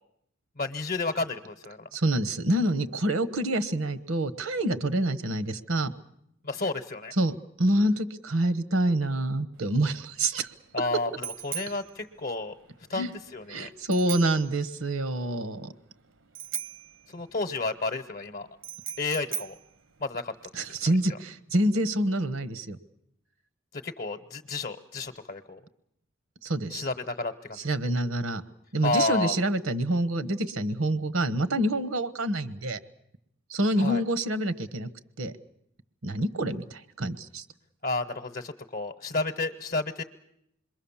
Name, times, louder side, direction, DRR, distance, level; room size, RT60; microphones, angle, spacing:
voice 1, 0.6-1.9 6.4-7.1 10.7-12.5 12.9-13.7 17.1-18.5 19.0-19.5 20.0-20.3 21.1-21.2 23.7-25.6 26.7-27.7 28.8-29.4 33.8-34.0 37.8-40.0, left 3 dB, 45° left, 6 dB, 0.9 m, -31 dB
voice 2, 1.9-5.9 7.2-10.5 10.8-10.9 12.9-13.1 13.5-15.7 20.5-22.8 26.4-26.9 27.6-28.4 28.7-32.8 33.5-34.9 35.2-35.3 36.0-37.4, right 1 dB, 80° right, 12 dB, 1.2 m, -27 dB
Bicycle bell, 9.6-20.7, right 10 dB, 65° right, 0.9 m, -41 dB
27.0 x 22.0 x 7.2 m, 0.75 s
head